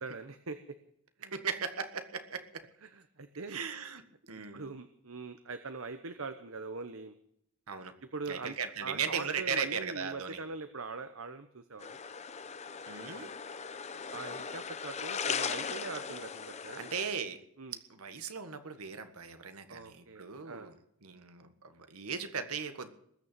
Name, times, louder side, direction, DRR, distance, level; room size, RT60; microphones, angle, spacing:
voice 1, 0.0-0.8 1.2-1.3 2.8-3.6 4.5-7.1 8.1-8.5 8.8-12.0 14.1-16.8 17.6-17.8 19.7-20.7, right 4 dB, 65° right, 9 dB, 1.0 m, -42 dB
voice 2, 1.3-2.6 3.5-4.0 4.3-4.6 7.7-7.9 8.3-10.4 12.9-13.3 16.8-17.4 17.9-20.7 21.0-23.0, right 6 dB, 85° right, 9 dB, 1.6 m, -37 dB
sound 1, 11.8-17.1, left 6 dB, 30° left, 0.7 m, -38 dB
20.5 x 6.8 x 9.1 m, 0.71 s
head